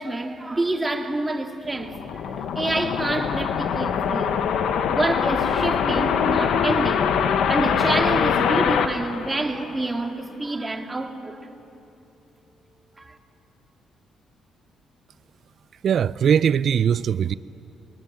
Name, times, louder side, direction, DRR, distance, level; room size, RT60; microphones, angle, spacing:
voice 1, 0.0-4.5 4.9-11.5 13.0-13.2, right 2 dB, 20° right, 2.3 m, -28 dB
sound 1, 1.7-10.0, left 7 dB, 75° left, 1.2 m, -23 dB
voice 2, 15.8-17.4, right 8 dB, 60° right, 0.6 m, -20 dB
29.0 x 22.5 x 9.1 m
cardioid pair, 90°, 0 cm